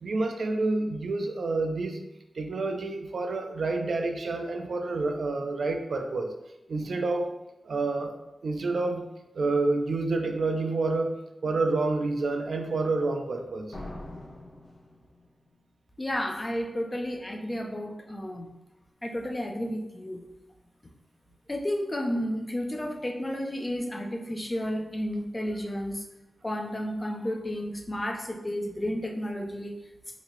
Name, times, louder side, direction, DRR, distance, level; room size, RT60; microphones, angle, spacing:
voice 1, 0.0-2.0 2.4-6.3 6.7-7.3 7.7-8.2 8.4-9.1 9.4-11.1 11.4-13.7, right 3 dB, 80° right, 5 dB, 0.4 m, -28 dB
sound 1, 13.7-15.5, left 1 dB, 75° left, 0.9 m, -43 dB
voice 2, 16.0-18.5 19.0-20.2 21.5-26.0 26.4-29.7, equal, 25° left, 2 dB, 0.5 m, -32 dB
3.9 x 2.7 x 3.1 m, 0.95 s
wide cardioid pair, 85°, 0 cm